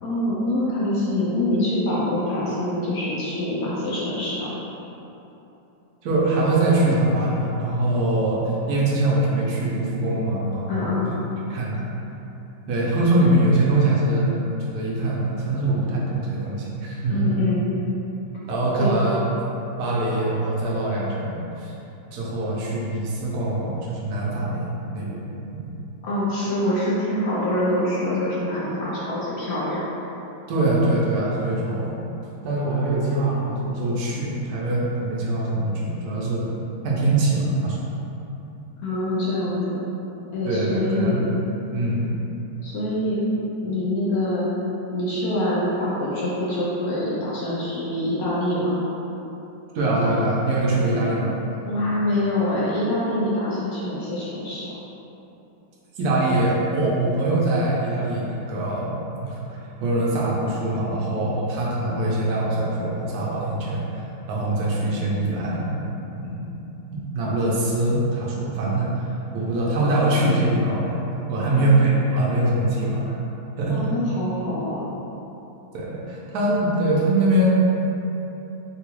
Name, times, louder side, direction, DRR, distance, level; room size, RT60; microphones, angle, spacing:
voice 1, 0.0-4.5 10.7-11.2 17.1-17.6 18.8-18.9 26.0-29.8 38.8-39.8 40.3-41.2 42.6-43.2 43.6-44.5 44.9-48.8 51.7-54.7 71.4-71.7 73.7-74.9, left 1 dB, 65° left, -8 dB, 0.9 m, -25 dB
voice 2, 6.0-11.1 11.5-11.8 12.7-17.3 18.5-19.2 19.8-21.7 22.1-25.7 30.5-32.0 32.4-36.5 36.8-37.8 40.4-41.2 41.7-42.1 49.7-51.3 56.0-58.9 59.2-65.7 66.2-66.4 66.9-69.1 69.3-71.0 71.3-73.1 73.6-73.8 75.7-77.5, right 2 dB, 70° right, -5 dB, 1.0 m, -23 dB
3.7 x 2.3 x 3.0 m, 3.0 s
omnidirectional pair, 2.1 m